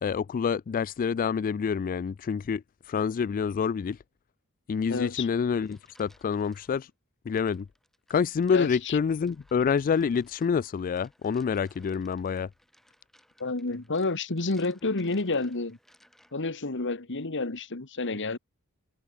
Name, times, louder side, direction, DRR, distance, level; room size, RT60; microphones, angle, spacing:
voice 1, 0.0-4.0 4.7-6.9 7.3-7.7 8.1-12.5, left 6 dB, 40° left, 0.3 m, -27 dB
voice 2, 4.9-5.3 8.5-9.0 13.4-15.8 16.3-18.4, left 3 dB, 55° left, 1.6 m, -30 dB
sound 1, 5.5-6.9 7.4-16.6, equal, ahead, 7.9 m, -63 dB
head